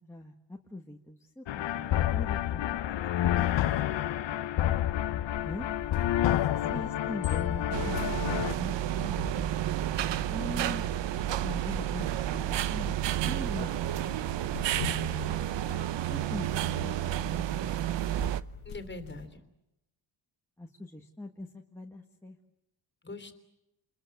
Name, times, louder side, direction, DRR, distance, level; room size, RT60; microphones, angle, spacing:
voice 1, 0.0-2.8 5.4-5.7 6.7-10.0 10.3-10.8 11.4-14.1 16.1-16.5 16.7-18.0 20.6-22.4, left 1 dB, 5° left, -1 dB, 1.7 m, -42 dB
sound 1, 1.5-8.5, left 12 dB, 65° left, 1.0 m, -29 dB
sound 2, 5.3-19.3, left 6 dB, 85° left, 2.0 m, -46 dB
voice 2, 6.3-6.9 14.7-15.4 18.6-19.4 23.0-23.4, left 2 dB, 20° left, 8 dB, 3.3 m, -43 dB
sound 3, 7.7-18.4, right 12 dB, 60° right, 0.9 m, -31 dB
28.5 x 21.5 x 8.0 m, 0.90 s
cardioid pair, 95°, 48 cm